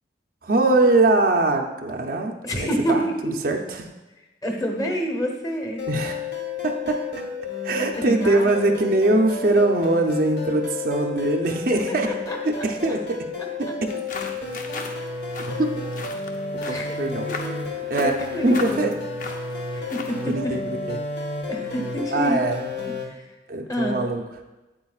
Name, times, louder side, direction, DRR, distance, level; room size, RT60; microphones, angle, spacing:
voice 1, 0.4-3.0 3.4-3.9 5.9-6.2 6.6-7.2 7.6-12.1 12.4-13.3 15.5-15.8 16.7-17.3 17.9-18.9 20.3-21.0 22.1-22.6 23.5-24.2, right 2 dB, 50° right, 3 dB, 0.6 m, -22 dB
voice 2, 2.4-3.3 4.4-5.8 7.9-8.7 11.9-13.0 16.6-16.8 17.2-17.6 18.0-18.9 19.7-20.5 21.5-22.4 22.9-23.3 23.7-24.0, equal, 20° left, 2 dB, 1.1 m, -28 dB
sound 1, 5.8-23.1, left 4 dB, 65° left, 1.1 m, -32 dB
sound 2, 13.8-20.3, left 3 dB, 45° left, 0.7 m, -38 dB
8.8 x 8.5 x 2.4 m, 1.1 s
head